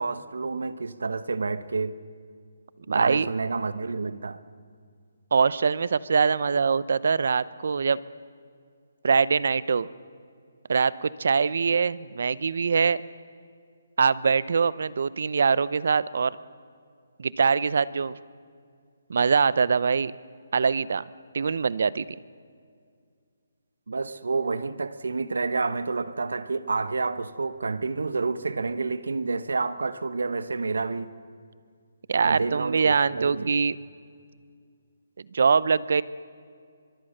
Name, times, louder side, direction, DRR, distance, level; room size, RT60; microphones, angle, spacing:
voice 1, 0.0-2.0 2.9-4.4 23.9-31.1 32.2-33.5, right 4 dB, 85° right, 1.2 m, -29 dB
voice 2, 2.9-3.3 5.3-8.0 9.0-9.9 10.7-13.0 14.0-16.4 17.2-18.1 19.1-20.1 20.5-21.0 21.3-22.0 32.1-33.8 35.3-36.0, right 5 dB, 60° right, 0.7 m, -23 dB
23.0 x 23.0 x 6.7 m
hypercardioid pair, 165°, 0 cm